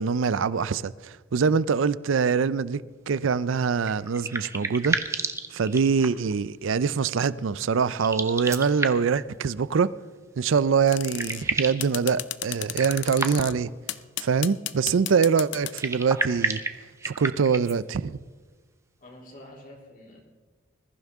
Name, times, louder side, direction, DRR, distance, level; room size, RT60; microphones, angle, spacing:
voice 1, 0.0-5.0 5.5-9.9 10.4-13.7 14.2-16.6 17.0-18.2, right 5 dB, 65° right, 0.4 m, -24 dB
sound 1, 3.8-6.3 7.9-9.2 10.6-10.7 10.9-11.9 12.7-13.7 15.6-17.8, right 3 dB, 15° right, 0.7 m, -31 dB
sound 2, 10.9-11.4 11.8-13.5 13.9-15.9, left 14 dB, 60° left, 0.5 m, -33 dB
voice 2, 19.0-20.2, left 1 dB, 40° left, 3.3 m, -47 dB
21.0 x 14.5 x 3.6 m
head